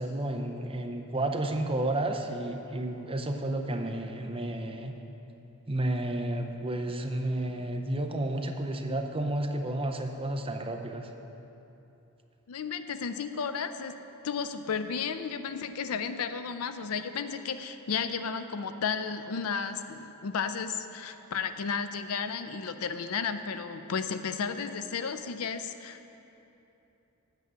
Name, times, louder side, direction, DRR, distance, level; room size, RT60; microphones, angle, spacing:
voice 1, 0.0-4.9 5.7-11.1, right 1 dB, 25° right, 4 dB, 0.6 m, -31 dB
voice 2, 12.5-13.9 14.2-26.2, left 6 dB, 75° left, 10 dB, 0.5 m, -33 dB
8.3 x 6.2 x 7.9 m, 2.9 s
head